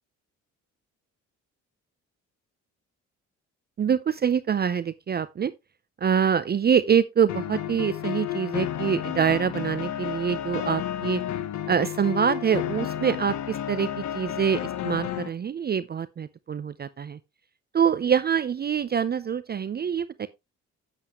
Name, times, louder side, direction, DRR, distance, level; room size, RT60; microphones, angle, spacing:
voice 1, 3.8-5.5 6.0-11.2 11.7-17.2 17.7-20.3, right 7 dB, 35° right, 0.5 m, -25 dB
sound 1, 7.3-15.3, left 11 dB, 70° left, 1.0 m, -31 dB
8.2 x 7.8 x 3.0 m
cardioid pair, 90°, 30 cm